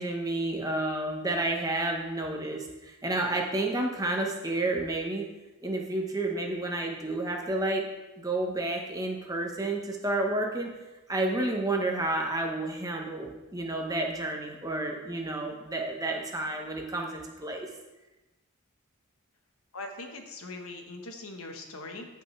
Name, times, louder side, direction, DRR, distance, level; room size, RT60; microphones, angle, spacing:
voice 1, 0.0-5.2 5.6-7.8 8.2-10.7 11.1-17.7, right 2 dB, 15° right, 1 dB, 0.9 m, -30 dB
voice 2, 19.7-22.0, left 2 dB, 70° left, 4 dB, 1.2 m, -41 dB
14.5 x 5.6 x 3.3 m, 1.1 s
head